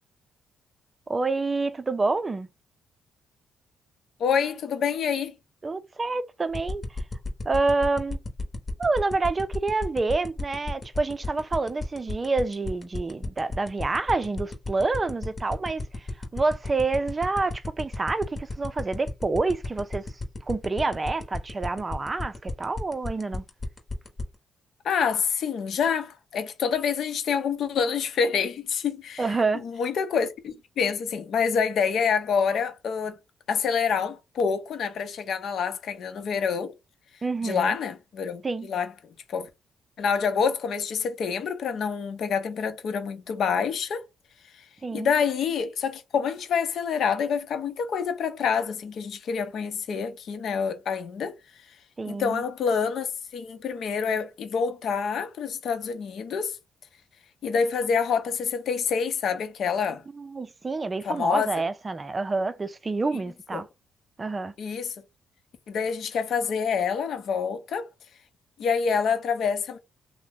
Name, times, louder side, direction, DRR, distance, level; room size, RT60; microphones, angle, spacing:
voice 1, 1.1-2.5 5.6-6.8 7.5-8.2 8.8-20.0 20.4-23.4 29.2-29.6 37.2-37.8 38.4-38.7 44.8-45.1 52.0-52.4 60.2-63.7 64.2-64.5, right 3 dB, 25° right, 0.4 m, -28 dB
voice 2, 4.2-5.3 24.8-29.3 29.6-33.2 33.5-36.7 37.4-38.9 39.3-39.5 40.0-44.0 44.9-51.3 52.0-56.6 57.4-60.0 61.0-61.5 63.1-63.2 63.5-63.6 64.6-64.9 65.7-67.9 68.6-69.8, left 6 dB, 65° left, 0.7 m, -27 dB
sound 1, 6.5-24.2, left 4 dB, 30° left, 0.9 m, -32 dB
2.8 x 2.1 x 3.5 m
cardioid pair, 90°, 0 cm